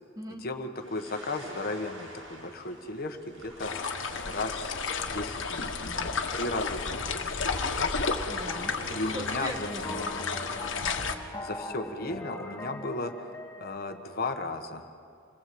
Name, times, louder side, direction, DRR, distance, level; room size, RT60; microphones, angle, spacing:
voice 1, 0.4-3.7 4.2-7.2 7.8-7.9 8.9-9.5 10.0-10.1 11.4-13.1 13.6-14.8, left 2 dB, 50° left, 5 dB, 1.5 m, -35 dB
sound 1, 0.7-10.3, right 1 dB, 75° right, 7.8 m, -50 dB
sound 2, 3.6-11.1, left 4 dB, 70° left, 1.7 m, -32 dB
voice 2, 8.2-10.1, right 1 dB, 20° right, 4 dB, 1.6 m, -39 dB
sound 3, 8.5-13.8, left 1 dB, 10° left, 2.9 m, -41 dB
27.5 x 20.0 x 7.9 m, 2.3 s
head